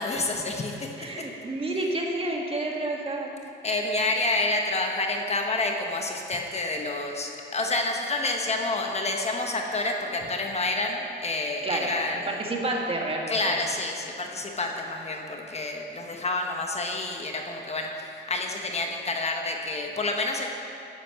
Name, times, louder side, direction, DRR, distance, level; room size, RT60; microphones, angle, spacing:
voice 1, 0.0-1.3 3.6-12.4 13.3-20.5, left 2 dB, 35° left, 2 dB, 1.2 m, -29 dB
voice 2, 1.0-3.3 11.6-11.9 12.3-13.5, right 2 dB, 30° right, 0 dB, 1.9 m, -29 dB
10.5 x 8.7 x 6.7 m, 2.7 s
cardioid pair, 90°, 20 cm